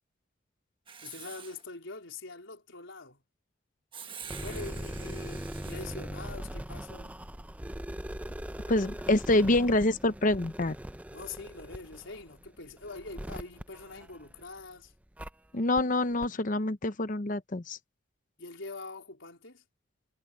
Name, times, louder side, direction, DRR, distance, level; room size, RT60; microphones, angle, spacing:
Writing, 0.9-1.6 3.9-5.9, right 7 dB, 25° right, 1.4 m, -46 dB
voice 1, 1.0-3.2 4.4-7.2 11.1-14.9 18.4-19.6, left 3 dB, 80° left, 4.2 m, -44 dB
sound 1, 4.2-14.6 15.2-15.3 15.8-15.9 16.2-16.3, right 1 dB, 10° right, 0.6 m, -41 dB
voice 2, 8.7-10.8 15.5-17.8, left 2 dB, 45° left, 0.9 m, -26 dB
head